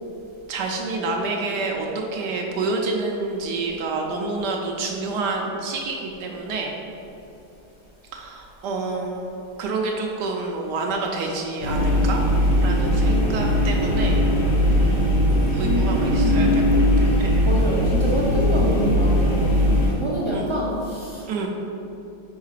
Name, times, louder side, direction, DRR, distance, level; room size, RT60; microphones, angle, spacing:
voice 1, 0.5-6.7 8.1-12.2 12.6-14.2 15.5-17.5 20.3-20.5 21.3-21.5, right 3 dB, 75° right, 0 dB, 1.2 m, -28 dB
sound 1, 11.6-19.9, equal, 70° left, 1.6 m, -19 dB
voice 2, 15.6-16.7 17.4-21.3, equal, 50° right, -6 dB, 0.3 m, -26 dB
4.7 x 4.6 x 4.8 m, 2.9 s
omnidirectional pair, 1.9 m